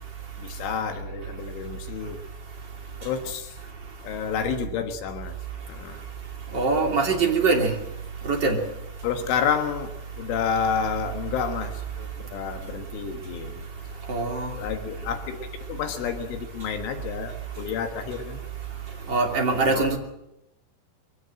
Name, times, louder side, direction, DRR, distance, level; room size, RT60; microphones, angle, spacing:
voice 1, 0.4-2.2 3.0-3.6 4.0-5.4 5.7-6.0 9.0-14.0 14.5-18.4 19.6-20.0, left 7 dB, 70° left, 6 dB, 3.9 m, -30 dB
voice 2, 6.5-7.7 8.2-8.6 14.1-14.5 19.1-20.0, right 3 dB, 30° right, 1 dB, 2.2 m, -22 dB
23.0 x 17.5 x 7.7 m, 0.88 s
omnidirectional pair, 5.9 m